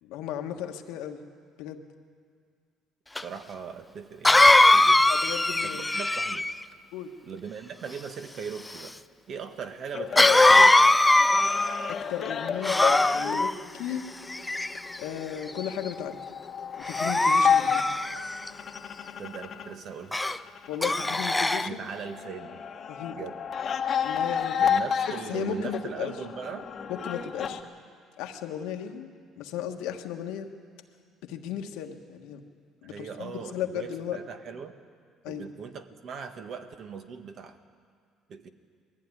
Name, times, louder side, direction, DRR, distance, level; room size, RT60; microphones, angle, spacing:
voice 1, 0.0-1.2 1.6-1.8 5.1-5.9 6.9-7.1 11.9-14.1 15.0-16.2 16.8-17.8 20.7-21.8 22.9-23.1 24.0-24.6 25.3-26.1 26.9-27.6 28.2-29.1 29.4-30.5 31.2-32.4 32.8-34.2 35.2-35.5, left 9 dB, 85° left, 4 dB, 1.4 m, -35 dB
Cough, 3.2-3.3 4.2-6.6 10.2-11.9 12.6-13.5 14.3-15.0 15.6-15.9 16.9-18.5 20.1-20.4 20.8-21.7, left 2 dB, 10° left, 0.5 m, -21 dB
voice 2, 3.2-5.1 5.9-6.5 7.2-8.9 9.3-10.9 19.2-20.2 21.5-22.6 23.1-23.4 24.6-26.7 32.8-34.7 35.3-37.6 38.3-38.5, right 6 dB, 55° right, 7 dB, 1.5 m, -39 dB
sound 1, 9.9-19.7 20.0-27.6, left 7 dB, 45° left, 1.2 m, -31 dB
20.5 x 14.0 x 9.7 m, 2.1 s
cardioid pair, 105°, 0 cm